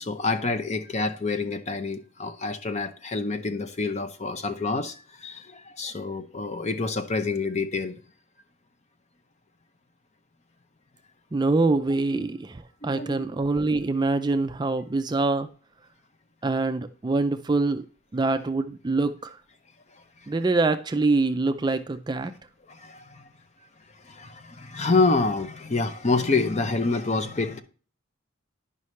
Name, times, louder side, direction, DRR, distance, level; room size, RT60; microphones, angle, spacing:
voice 1, 0.0-8.0 12.1-12.2 12.8-13.2 22.8-23.2 24.1-27.6, left 3 dB, 35° left, 0.6 m, -27 dB
voice 2, 11.3-15.5 16.4-17.9 18.1-19.3 20.3-22.3, right 3 dB, 20° right, 0.3 m, -25 dB
11.0 x 5.5 x 3.2 m
head